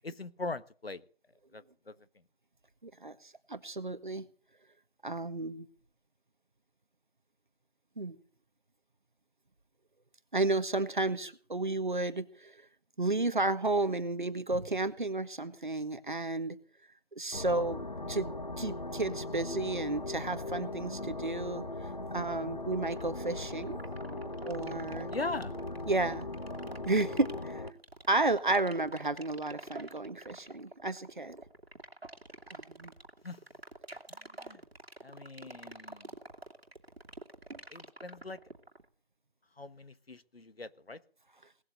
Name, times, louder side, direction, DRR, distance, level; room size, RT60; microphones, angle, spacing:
voice 1, 0.0-1.0 1.5-1.9 25.1-25.6 33.2-33.4 34.1-34.6 35.0-36.2 37.7-38.4 39.6-41.0, left 2 dB, 75° left, 14 dB, 1.5 m, -41 dB
voice 2, 2.8-3.2 3.5-4.3 5.0-5.7 8.0-8.2 10.3-12.5 13.0-16.6 17.2-18.3 18.6-21.7 22.1-23.8 24.4-25.1 25.9-26.3 26.9-27.6 28.1-31.4 32.5-32.9, right 2 dB, 50° right, 12 dB, 1.7 m, -32 dB
sound 1, 17.3-27.7, left 2 dB, 45° left, 1.4 m, -39 dB
sound 2, 22.9-38.9, right 2 dB, 80° right, 2.5 m, -46 dB
19.0 x 8.1 x 9.0 m, 0.42 s
figure-of-eight pair, 175°, 30 cm